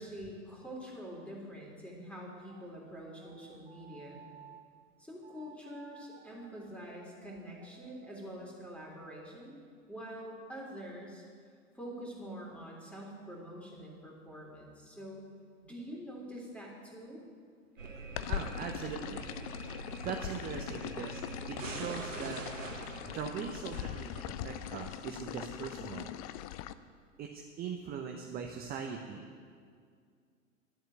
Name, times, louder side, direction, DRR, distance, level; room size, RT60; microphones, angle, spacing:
voice 1, 0.0-4.2 5.0-9.6 9.9-11.2 11.7-15.3 15.6-17.2, equal, 5° left, -3 dB, 3.3 m, -46 dB
sound 1, 2.5-4.7 5.2-8.5, right 8 dB, 55° right, 1.2 m, -57 dB
sound 2, 17.8-24.6, right 3 dB, 80° right, 1.2 m, -45 dB
sound 3, 18.2-26.7, left 12 dB, 30° left, 0.4 m, -41 dB
voice 2, 18.3-19.3 20.0-21.2 21.5-22.4 23.1-26.1 27.2-29.3, right 7 dB, 25° right, 3 dB, 0.9 m, -40 dB
11.0 x 7.8 x 9.2 m, 2.1 s
figure-of-eight pair, 95°, 38 cm